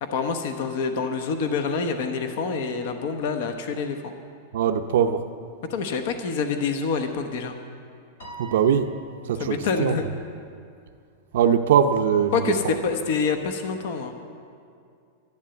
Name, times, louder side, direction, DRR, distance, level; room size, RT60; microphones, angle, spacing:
voice 1, 0.0-4.1 5.7-7.6 9.4-10.0 12.3-14.1, left 5 dB, 55° left, 6 dB, 1.0 m, -26 dB
voice 2, 4.5-5.2 8.4-8.9 9.3-10.0 11.3-12.8, right 8 dB, 70° right, 7 dB, 0.6 m, -21 dB
Piano, 8.2-9.7, right 4 dB, 85° left, 2.9 m, -43 dB
11.5 x 11.0 x 8.0 m, 2.3 s
supercardioid pair, 170°, 0 cm